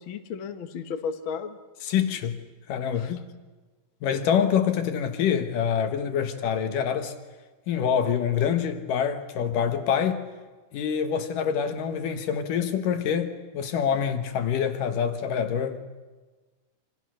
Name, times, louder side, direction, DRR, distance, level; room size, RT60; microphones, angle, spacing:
voice 1, 0.0-1.6 3.0-3.2, left 6 dB, 80° left, 1.1 m, -34 dB
voice 2, 1.8-2.4 2.7-3.1 4.0-7.1 7.7-10.2 10.7-15.8, left 8 dB, 65° left, 2.7 m, -26 dB
28.0 x 27.0 x 6.4 m
omnidirectional pair, 4.7 m